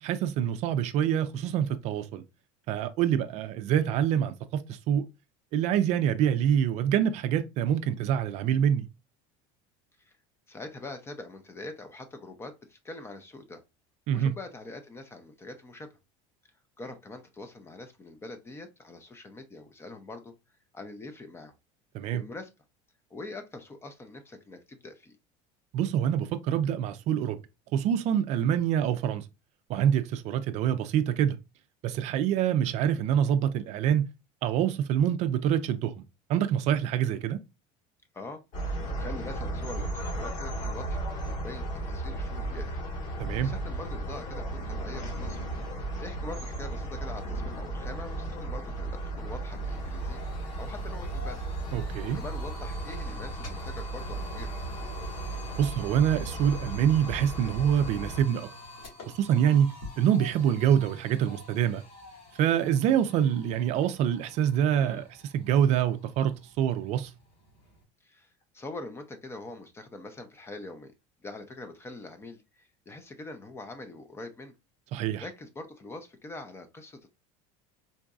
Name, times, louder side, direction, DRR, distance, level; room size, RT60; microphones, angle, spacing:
voice 1, 0.0-2.2 2.7-5.1 5.5-8.9 14.1-14.3 21.9-22.2 25.7-27.4 27.7-29.2 29.7-31.4 31.8-34.1 34.4-36.0 36.3-37.4 43.2-43.5 51.7-52.2 55.6-58.5 59.1-61.8 62.4-67.1 74.9-75.2, right 9 dB, 50° right, 0.4 m, -26 dB
voice 2, 10.5-13.6 14.1-16.0 16.8-20.3 20.7-21.5 22.1-22.5 23.1-25.2 38.1-42.7 43.4-45.4 46.0-50.2 50.5-51.4 52.1-54.5 64.8-65.1 68.0-68.3 68.5-70.9 71.2-74.5 75.2-77.1, left 2 dB, 15° left, 0.5 m, -43 dB
sound 1, 38.5-58.2, right 2 dB, 55° left, 1.3 m, -35 dB
sound 2, 48.8-67.8, left 2 dB, 80° left, 2.0 m, -48 dB
3.9 x 2.5 x 2.3 m
supercardioid pair, 135°, 15 cm